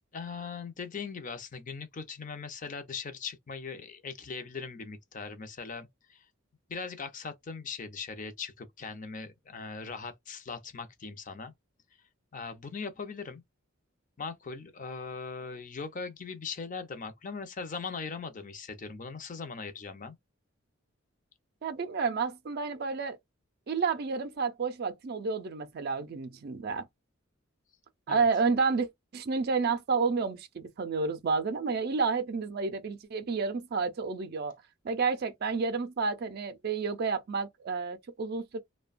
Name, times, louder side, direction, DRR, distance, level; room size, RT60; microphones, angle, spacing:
voice 1, 0.1-6.3 6.7-11.5 12.3-13.4 14.2-20.2 28.1-28.2, left 5 dB, 40° left, 0.5 m, -40 dB
voice 2, 21.6-23.2 23.7-26.9 28.1-28.9 29.1-34.5 34.8-38.6, right 4 dB, 50° right, 0.4 m, -30 dB
2.7 x 2.1 x 2.4 m
head